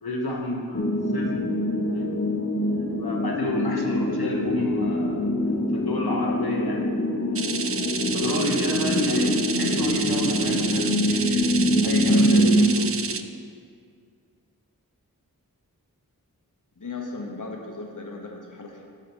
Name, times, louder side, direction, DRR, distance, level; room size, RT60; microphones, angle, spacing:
voice 1, 0.0-1.4 1.9-2.1 2.5-5.2 5.7-7.4 8.1-13.2, left 1 dB, 85° left, -1 dB, 1.1 m, -30 dB
sound 1, 0.7-12.7, equal, 40° left, 1.0 m, -24 dB
sound 2, 7.3-13.2, right 5 dB, 40° right, 0.5 m, -30 dB
voice 2, 16.8-18.8, left 3 dB, 55° left, 0 dB, 1.1 m, -36 dB
7.3 x 6.4 x 5.4 m, 2.2 s
wide cardioid pair, 50°, 36 cm